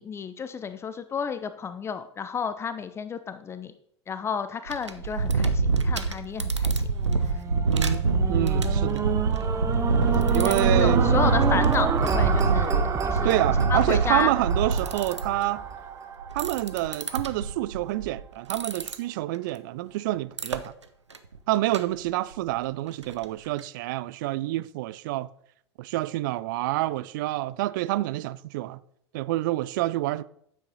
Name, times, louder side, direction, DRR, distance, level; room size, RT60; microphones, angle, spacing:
voice 1, 0.0-3.7 4.1-6.9 10.3-13.3 13.7-14.3, left 6 dB, 15° left, 0.5 m, -31 dB
sound 1, 4.7-15.5 16.2-18.2 18.5-18.9 20.4-20.6 21.1-21.4 21.7-21.8 22.0-22.1 22.5-22.6 23.0-23.1 23.6-23.7, right 4 dB, 80° right, 0.7 m, -25 dB
sound 2, 6.9-17.2 17.8-17.9, right 6 dB, 20° right, 0.8 m, -30 dB
voice 2, 7.7-8.0 8.3-9.1 10.3-11.1 13.2-15.6 16.3-20.7 21.5-25.3 25.8-28.8 29.1-30.2, right 16 dB, 45° right, 0.4 m, -27 dB
9.2 x 7.3 x 3.9 m
figure-of-eight pair, 90°, 15 cm